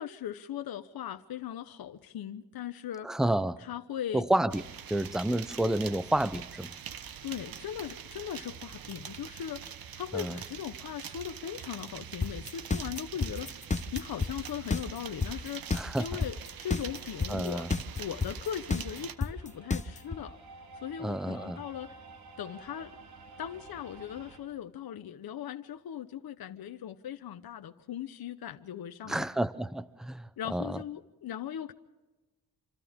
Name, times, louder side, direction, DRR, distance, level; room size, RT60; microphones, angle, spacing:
voice 1, 0.0-3.1 3.6-4.2 7.2-13.6 13.9-17.7 18.0-20.4 20.8-22.0 22.4-22.9 23.4-29.3 30.4-31.7, left 10 dB, 65° left, 1.0 m, -39 dB
voice 2, 3.0-3.6 4.1-6.8 10.1-10.4 15.7-16.2 17.3-17.7 21.0-21.6 29.1-30.8, right 1 dB, ahead, 0.7 m, -30 dB
sound 1, 4.5-19.2, right 8 dB, 65° right, 1.1 m, -44 dB
sound 2, 12.2-20.2, left 4 dB, 20° left, 0.9 m, -30 dB
sound 3, 15.8-24.4, right 3 dB, 80° right, 3.8 m, -52 dB
27.0 x 27.0 x 3.7 m
cardioid pair, 115°, 38 cm